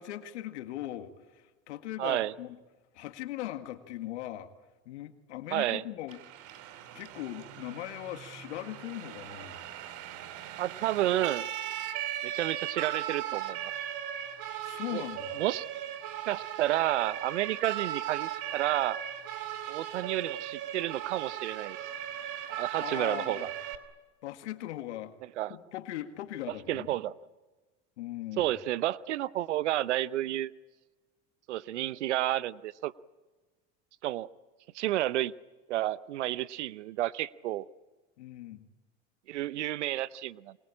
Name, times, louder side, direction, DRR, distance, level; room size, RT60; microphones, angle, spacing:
voice 1, 0.0-2.6 2.9-4.5 4.9-6.2 6.9-9.6 14.6-15.4 22.8-23.5 24.2-25.1 25.5-26.9 28.0-28.5 38.2-38.7, left 14 dB, 80° left, 8 dB, 2.0 m, -39 dB
voice 2, 2.0-2.3 5.5-5.8 10.6-11.5 12.2-13.7 14.9-15.0 15.4-15.6 16.3-19.0 19.7-21.8 22.5-23.5 25.4-25.6 26.5-27.1 28.4-30.5 31.5-32.9 34.0-34.3 34.7-35.3 35.7-37.7 39.3-40.6, right 14 dB, 90° right, 18 dB, 0.8 m, -31 dB
Siren, 6.1-23.8, right 11 dB, 60° right, 2.6 m, -38 dB
27.5 x 24.5 x 8.7 m, 1.3 s
hypercardioid pair, 90°, 34 cm